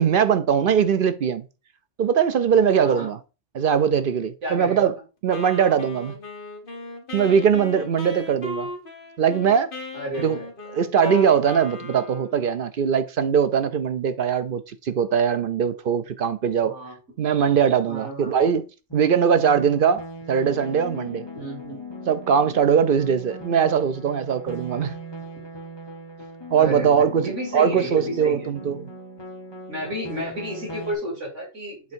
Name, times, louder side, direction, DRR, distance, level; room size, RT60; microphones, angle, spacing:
voice 1, 0.0-1.5 2.0-3.2 3.5-5.0 5.2-6.2 7.1-8.7 9.2-9.7 10.2-10.4 10.7-16.8 17.2-18.7 18.9-21.3 22.1-25.0 26.5-28.9, right 7 dB, 55° right, 0.7 m, -21 dB
voice 2, 2.8-3.1 4.4-4.9 9.9-10.5 16.6-16.9 17.9-18.3 21.3-21.8 26.6-28.5 29.7-31.9, right 1 dB, 85° right, 3.3 m, -32 dB
Wind instrument woodwind instrument, 5.3-12.4, left 3 dB, 50° left, 1.5 m, -36 dB
sound 1, 18.9-30.9, equal, 20° left, 1.5 m, -39 dB
8.2 x 3.4 x 4.5 m
omnidirectional pair, 1.2 m